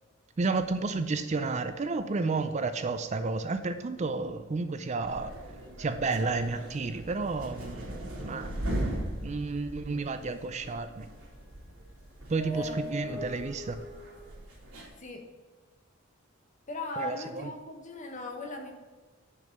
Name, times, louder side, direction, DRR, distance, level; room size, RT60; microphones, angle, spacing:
voice 1, 0.4-5.3 5.8-8.5 9.2-11.1 12.3-13.8 17.0-17.5, right 3 dB, 35° right, 10 dB, 0.4 m, -31 dB
sound 1, 5.0-14.9, equal, 90° right, 2.4 m, -38 dB
voice 2, 12.5-13.3 14.8-15.3 16.7-18.7, left 2 dB, 35° left, 3 dB, 1.3 m, -39 dB
6.6 x 5.3 x 6.6 m, 1.3 s
head